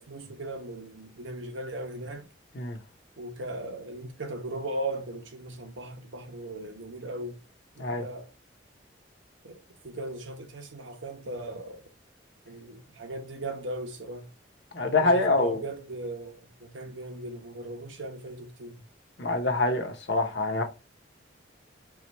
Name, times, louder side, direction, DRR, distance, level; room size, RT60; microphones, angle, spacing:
voice 1, 0.0-2.3 3.2-7.4 7.8-8.3 9.4-9.6 9.8-11.8 12.5-14.3 14.9-18.8, right 2 dB, 85° right, 1.0 m, -38 dB
voice 2, 14.7-15.6 19.2-20.6, left 2 dB, 70° left, 1.0 m, -25 dB
4.8 x 2.5 x 4.2 m
head